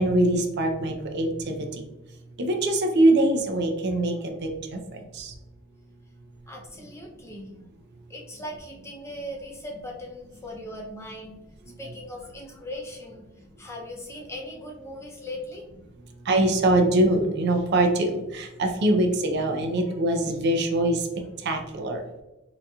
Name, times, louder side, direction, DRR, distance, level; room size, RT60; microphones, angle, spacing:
voice 1, 0.0-1.8 2.4-5.3 16.2-21.1 21.4-22.0, right 1 dB, 50° right, 4 dB, 0.5 m, -23 dB
voice 2, 6.5-7.5 8.1-11.4 11.8-15.6 19.9-20.0, left 1 dB, 15° left, 0 dB, 0.5 m, -39 dB
3.8 x 2.8 x 2.3 m, 1.0 s
head